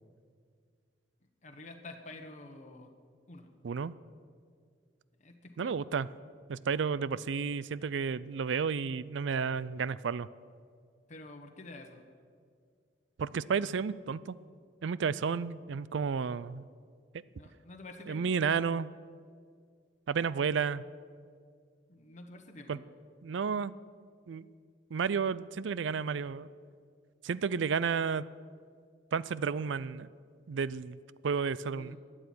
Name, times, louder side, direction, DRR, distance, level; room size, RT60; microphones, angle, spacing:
voice 1, 1.4-2.9 3.3-3.5 5.2-5.8 11.1-12.0 17.4-18.3 21.9-22.8 31.7-32.0, left 2 dB, 40° left, 3 dB, 1.3 m, -48 dB
voice 2, 3.6-3.9 5.6-6.1 6.5-10.3 13.2-14.4 14.8-16.6 18.1-18.9 20.1-20.8 22.7-22.8 23.2-23.7 24.3-24.5 24.9-26.5 27.2-28.2 29.1-30.1 30.5-32.0, right 6 dB, 70° right, 18 dB, 0.4 m, -32 dB
13.0 x 8.9 x 9.5 m, 2.1 s
head